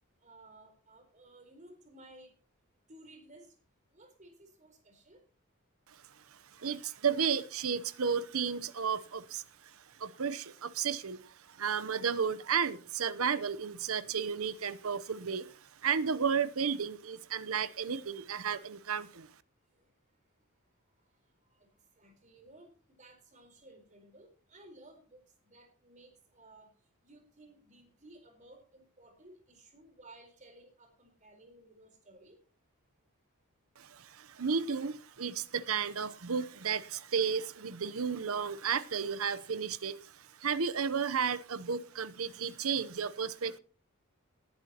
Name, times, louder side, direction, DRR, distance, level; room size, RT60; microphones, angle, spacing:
voice 1, 0.2-2.3 2.9-3.5 3.9-5.2 9.6-10.3 19.7-19.9 21.4-22.7 23.0-26.7 27.0-32.4, right 1 dB, 35° right, 4.3 m, -57 dB
voice 2, 6.5-9.4 9.7-19.3 33.8-43.6, right 6 dB, 75° right, 0.8 m, -33 dB
19.5 x 10.5 x 3.0 m
head